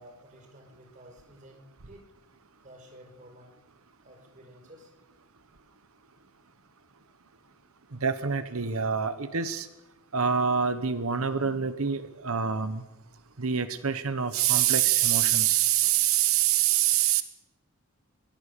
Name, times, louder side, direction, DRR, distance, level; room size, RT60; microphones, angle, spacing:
voice 1, 0.0-2.1 2.6-3.5 4.0-4.9 16.1-16.9, equal, 35° right, 3 dB, 4.9 m, -53 dB
voice 2, 8.0-9.7 10.1-12.8 13.4-17.2, right 9 dB, 70° right, 11 dB, 1.1 m, -25 dB
23.0 x 17.5 x 6.8 m, 0.97 s
head